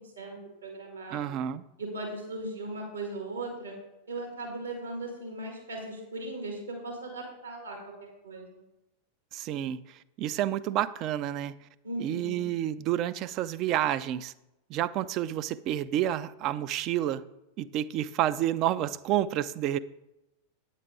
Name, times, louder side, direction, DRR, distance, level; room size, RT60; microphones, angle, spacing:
voice 1, 0.2-1.3 1.8-3.7 4.1-8.6 11.8-12.4, right 2 dB, 75° right, 0 dB, 2.1 m, -38 dB
voice 2, 1.1-1.6 9.3-11.6 12.0-14.3 14.7-17.2 17.6-19.8, right 12 dB, 40° right, 15 dB, 0.4 m, -29 dB
9.2 x 8.1 x 3.8 m, 0.93 s
figure-of-eight pair, 90°, 0 cm